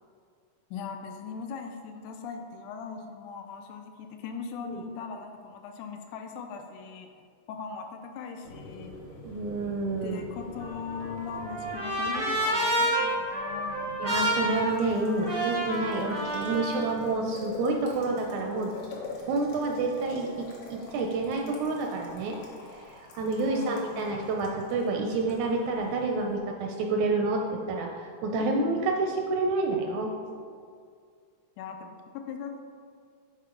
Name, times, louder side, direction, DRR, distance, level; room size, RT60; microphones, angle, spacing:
voice 1, 0.7-7.1 7.5-8.9 10.0-13.9 23.5-24.3 31.6-32.6, left 5 dB, 80° left, 5 dB, 2.0 m, -39 dB
Boiling, 8.4-26.4, left 2 dB, 55° left, 1.6 m, -45 dB
voice 2, 9.2-10.2 14.0-18.7 19.3-22.4 22.7-30.1, right 3 dB, 80° right, 1 dB, 1.7 m, -29 dB
Trumpet, 10.6-16.9, right 1 dB, 25° right, 0.8 m, -29 dB
9.7 x 4.5 x 3.8 m, 2.1 s
omnidirectional pair, 3.7 m